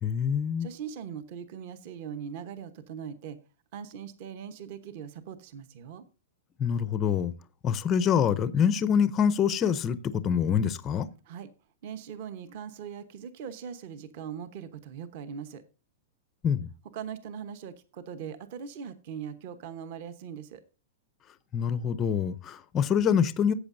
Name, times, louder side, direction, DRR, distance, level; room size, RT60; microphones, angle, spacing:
voice 1, 0.0-0.7 6.6-7.3 7.6-11.1 16.4-16.7 21.5-23.5, left 7 dB, 15° left, 0.5 m, -25 dB
voice 2, 0.6-3.4 3.7-6.0 11.2-11.5 11.8-15.6 16.9-20.6, right 7 dB, 40° right, 1.0 m, -40 dB
14.0 x 8.2 x 2.6 m
supercardioid pair, 170°, 0 cm